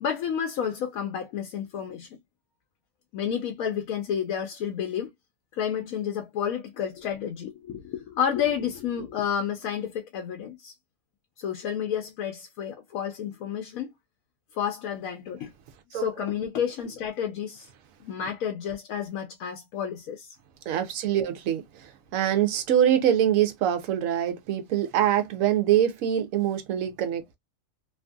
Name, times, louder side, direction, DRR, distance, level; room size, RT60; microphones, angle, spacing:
voice 1, 0.0-2.1 3.1-5.1 5.5-10.7 11.4-13.9 14.5-15.5 15.9-17.7 18.0-20.3, left 8 dB, 85° left, 1.1 m, -30 dB
voice 2, 20.7-21.6 22.1-27.4, right 10 dB, 80° right, 1.1 m, -24 dB
2.9 x 2.6 x 2.2 m
omnidirectional pair, 1.4 m